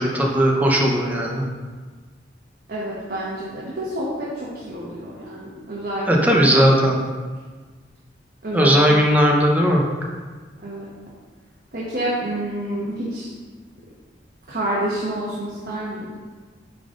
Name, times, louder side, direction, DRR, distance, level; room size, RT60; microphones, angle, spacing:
voice 1, 0.0-1.5 6.1-7.0 8.5-9.8, equal, 10° right, -1 dB, 0.8 m, -17 dB
voice 2, 2.7-6.3 8.4-8.8 10.6-10.8 11.7-13.3 14.5-16.1, right 1 dB, 55° right, -7 dB, 1.2 m, -28 dB
9.2 x 3.7 x 3.8 m, 1.4 s
head